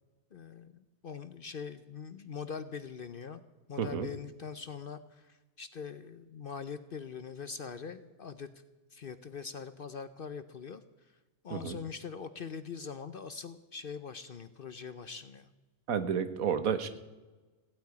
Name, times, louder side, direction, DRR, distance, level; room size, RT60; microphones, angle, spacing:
voice 1, 0.3-3.4 3.7-8.5 8.9-10.8 11.4-15.5, left 6 dB, 50° left, 12 dB, 0.7 m, -42 dB
voice 2, 15.9-16.9, right 7 dB, 80° right, 11 dB, 1.5 m, -31 dB
16.0 x 8.7 x 9.6 m, 1.2 s
omnidirectional pair, 1.5 m